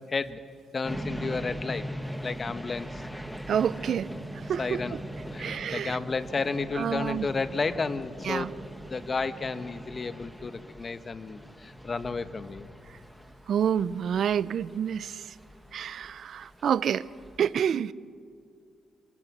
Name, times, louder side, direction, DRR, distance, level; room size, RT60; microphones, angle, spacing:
voice 1, 0.1-0.4 0.7-1.8 2.2-3.0 4.6-5.0 5.3-8.6 8.9-12.7, left 4 dB, 35° left, 1.2 m, -32 dB
sound 1, 0.8-17.4, equal, ahead, 1.3 m, -41 dB
voice 2, 3.5-5.0 5.4-6.0 6.7-7.3 8.2-8.5 13.5-15.3 15.7-17.1 17.4-17.9, right 8 dB, 60° right, 0.6 m, -28 dB
27.5 x 24.5 x 6.2 m
cardioid pair, 90°, 0 cm